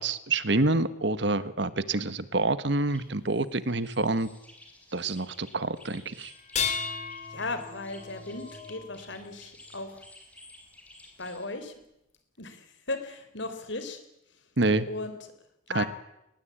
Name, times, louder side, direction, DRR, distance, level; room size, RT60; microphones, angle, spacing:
voice 1, 0.0-4.3 4.9-6.3 14.6-14.9 15.7-15.8, right 2 dB, 60° right, 15 dB, 1.3 m, -27 dB
sound 1, 2.9-11.5, left 1 dB, 5° left, 5.0 m, -54 dB
sound 2, 6.4-9.7 11.2-11.3 12.1-12.2, left 6 dB, 35° left, 3.5 m, -35 dB
voice 2, 7.3-10.0 11.2-11.7 12.4-14.0 14.9-15.2 15.7-15.9, left 2 dB, 65° left, 9 dB, 4.1 m, -36 dB
23.0 x 20.5 x 8.7 m, 0.85 s
head